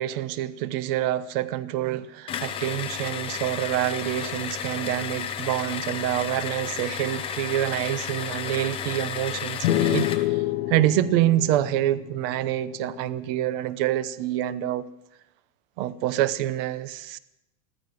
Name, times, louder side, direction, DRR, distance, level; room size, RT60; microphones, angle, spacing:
voice 1, 0.0-14.9 15.8-17.2, right 13 dB, 45° right, 15 dB, 0.9 m, -27 dB
sound 1, 2.3-10.3, left 8 dB, 15° left, 0.5 m, -33 dB
sound 2, 9.6-13.2, left 15 dB, 80° left, 0.8 m, -28 dB
15.5 x 14.0 x 6.4 m, 0.88 s
supercardioid pair, 170°, 42 cm